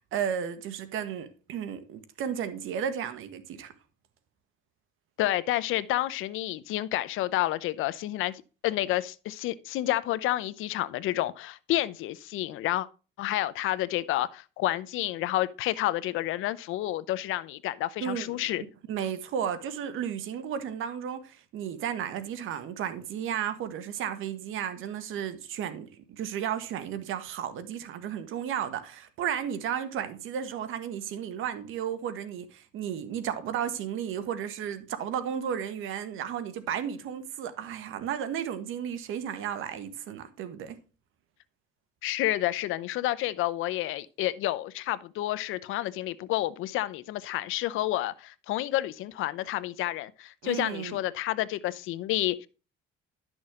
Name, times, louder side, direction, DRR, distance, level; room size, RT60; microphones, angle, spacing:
voice 1, 0.1-3.7 18.0-40.8 50.4-51.0, right 9 dB, 75° right, 1.5 m, -33 dB
voice 2, 5.2-12.9 13.2-18.6 42.0-52.5, left 15 dB, 75° left, 0.7 m, -30 dB
12.0 x 6.2 x 3.7 m
cardioid pair, 95°, 21 cm